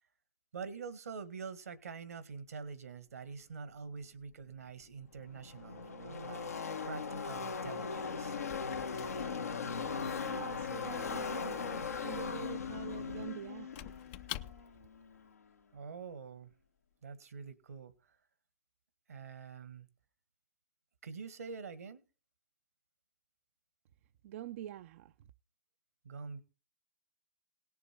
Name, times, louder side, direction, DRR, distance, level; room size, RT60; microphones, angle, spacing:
voice 1, 0.5-6.5 6.9-8.4 15.7-16.5 17.0-18.2 19.1-19.9 21.0-22.0 26.0-26.4, right 5 dB, 80° right, 1.8 m, -46 dB
Car passing by / Race car auto racing, 4.4-4.5 4.7-15.3, left 5 dB, 90° left, 1.5 m, -39 dB
Squeak / Wood, 7.8-15.0, left 14 dB, 45° left, 0.6 m, -50 dB
voice 2, 10.2-14.0 24.2-25.1, right 12 dB, 55° right, 0.5 m, -46 dB
18.0 x 7.0 x 4.5 m
hypercardioid pair, 115°, 8 cm